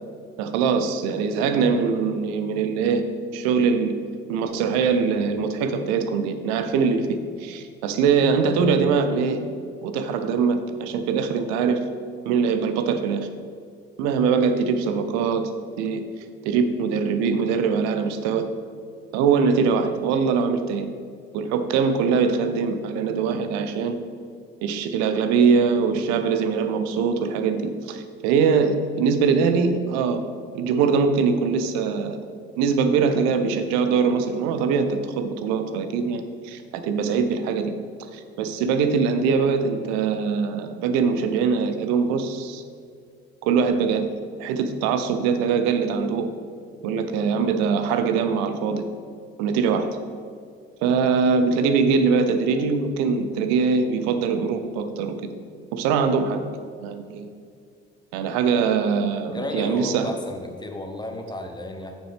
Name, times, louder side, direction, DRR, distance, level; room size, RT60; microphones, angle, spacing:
voice 1, 0.4-3.0 3.3-3.9 4.3-9.4 9.8-11.9 12.3-13.3 14.0-15.5 15.8-16.0 16.4-18.5 19.1-20.9 21.3-24.0 24.6-30.3 30.5-32.2 32.6-37.7 38.1-42.6 43.4-44.1 44.4-46.3 46.8-48.8 49.4-49.9 50.8-55.2 55.7-56.4 56.8-57.3 58.1-60.1, right 5 dB, 60° right, 8 dB, 0.8 m, -22 dB
voice 2, 59.3-61.9, left 1 dB, 15° left, 4 dB, 1.2 m, -33 dB
8.9 x 7.4 x 3.4 m, 2.3 s
figure-of-eight pair, 50°, 30 cm